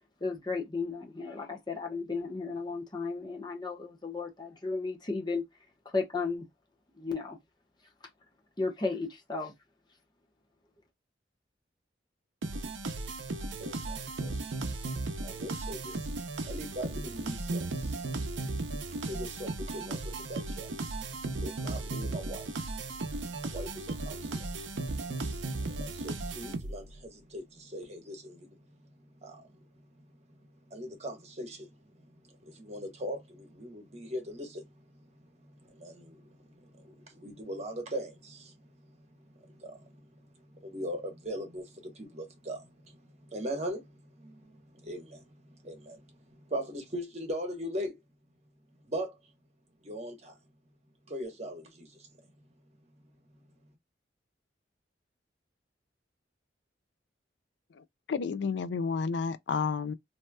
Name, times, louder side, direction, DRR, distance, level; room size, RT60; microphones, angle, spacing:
voice 1, 0.2-5.5 5.8-6.5 7.0-7.4 8.6-9.5, left 4 dB, 25° left, 1.0 m, -34 dB
sound 1, 12.4-27.0, right 2 dB, 85° right, 0.6 m, -36 dB
voice 2, 13.6-14.8 15.2-16.1 16.4-18.1 18.9-20.7 21.4-22.7 23.4-24.5 25.0-25.2 25.6-28.6 29.2-29.7 30.7-31.9 32.2-34.7 35.4-35.5 35.8-38.9 39.3-40.1 40.5-48.0 48.9-49.2 49.8-50.3 51.1-52.1, equal, 35° right, 1.2 m, -40 dB
voice 3, 57.8-59.9, left 5 dB, 75° left, 0.4 m, -31 dB
3.2 x 2.8 x 2.2 m
head